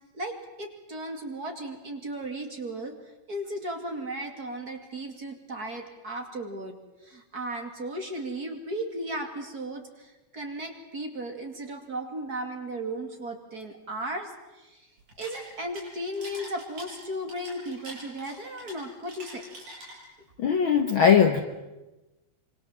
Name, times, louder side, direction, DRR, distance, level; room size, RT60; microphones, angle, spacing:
voice 1, 0.1-2.9 3.3-6.8 7.0-14.9 15.2-19.4, right 1 dB, 30° right, 4 dB, 2.6 m, -35 dB
sound 1, 15.0-20.3, right 1 dB, 85° right, 8.8 m, -45 dB
voice 2, 20.4-21.4, left 7 dB, 55° left, 6 dB, 1.6 m, -20 dB
26.0 x 25.5 x 7.4 m, 1.0 s
omnidirectional pair, 3.5 m